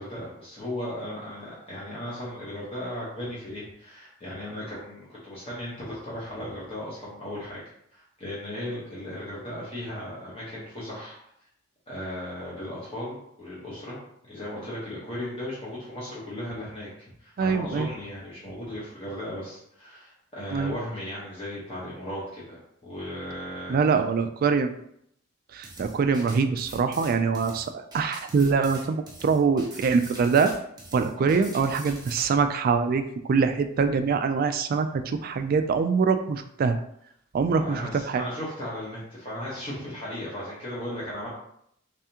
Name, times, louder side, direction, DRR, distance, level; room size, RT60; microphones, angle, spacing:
voice 1, 0.0-7.6 7.9-11.2 11.9-14.0 14.3-24.0 31.2-31.4 37.5-41.3, left 1 dB, 30° left, -8 dB, 1.0 m, -36 dB
voice 2, 17.4-17.9 20.5-20.7 23.7-24.8 25.5-30.5 30.9-33.0 33.3-36.8 37.3-38.2, right 5 dB, 45° right, 8 dB, 0.3 m, -24 dB
sound 1, 25.6-32.3, right 2 dB, 20° right, 0.8 m, -44 dB
3.5 x 3.3 x 2.8 m, 0.72 s
head